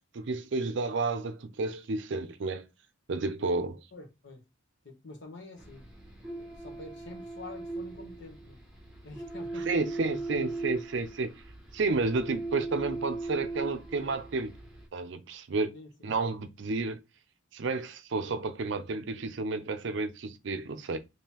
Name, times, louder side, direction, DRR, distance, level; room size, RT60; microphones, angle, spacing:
voice 1, 0.1-2.7 3.1-3.8 9.7-11.3 11.7-14.5 14.9-15.7 16.0-17.0 17.5-21.0, right 3 dB, 60° right, 0.5 m, -31 dB
voice 2, 3.9-4.4 4.8-5.9 6.4-8.6 9.0-10.2 15.7-16.1, left 2 dB, 60° left, 1.0 m, -47 dB
sound 1, 5.6-14.9, right 3 dB, 5° right, 1.0 m, -39 dB
3.7 x 2.8 x 2.9 m
head